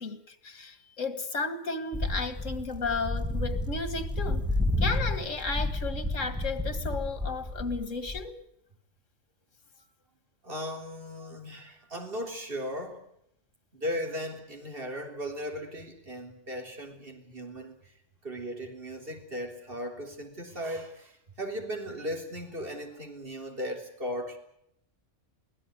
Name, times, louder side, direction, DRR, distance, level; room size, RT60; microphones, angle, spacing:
voice 1, 0.0-4.4 4.8-8.4, left 3 dB, 90° left, 2.3 m, -34 dB
sound 1, 1.9-8.2, left 1 dB, 5° right, 2.7 m, -31 dB
voice 2, 10.4-13.0 13.7-17.9 18.2-24.4, equal, 50° right, 3.9 m, -37 dB
23.5 x 16.5 x 9.5 m
omnidirectional pair, 1.3 m